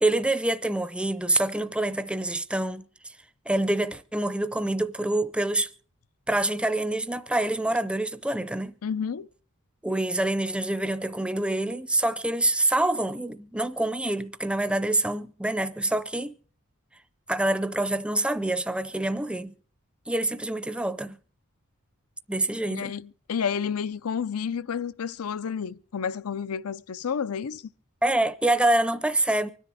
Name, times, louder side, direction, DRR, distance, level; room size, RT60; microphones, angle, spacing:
voice 1, 0.0-3.1 3.5-5.7 6.3-8.8 9.8-16.3 17.3-19.5 20.1-21.2 22.3-22.9 28.0-29.5, right 1 dB, 5° right, 0.5 m, -26 dB
voice 2, 8.8-9.3 22.7-27.6, left 7 dB, 85° left, 0.5 m, -30 dB
24.5 x 10.0 x 3.6 m
head